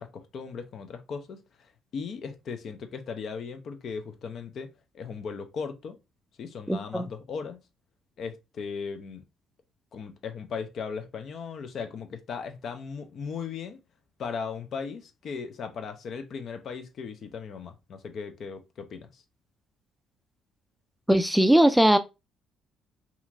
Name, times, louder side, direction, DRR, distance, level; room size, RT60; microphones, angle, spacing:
voice 1, 0.0-4.7 4.9-6.0 6.4-7.6 8.2-9.2 9.9-13.8 14.2-19.2, left 5 dB, 60° left, 0.5 m, -37 dB
voice 2, 6.7-7.1 21.1-22.0, right 1 dB, 5° right, 0.3 m, -20 dB
2.8 x 2.4 x 2.5 m
supercardioid pair, 65°, 0 cm